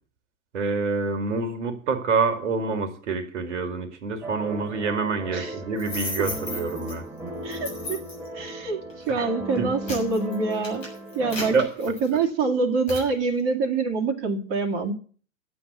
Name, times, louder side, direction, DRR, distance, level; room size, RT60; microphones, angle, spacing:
voice 1, 0.5-7.0 9.1-9.3 9.6-9.7 11.5-11.7, right 4 dB, 60° right, 2.1 m, -26 dB
sound 1, 4.2-11.7, right 1 dB, 5° right, 2.5 m, -36 dB
sound 2, 5.8-6.9 7.5-8.3 8.9-9.1 9.6-12.4 12.9-13.1, left 2 dB, 70° left, 6.9 m, -35 dB
voice 2, 7.4-8.0 8.3-10.9 11.1-14.9, right 4 dB, 35° right, 2.3 m, -26 dB
11.0 x 8.0 x 8.0 m
figure-of-eight pair, 95°, 40 cm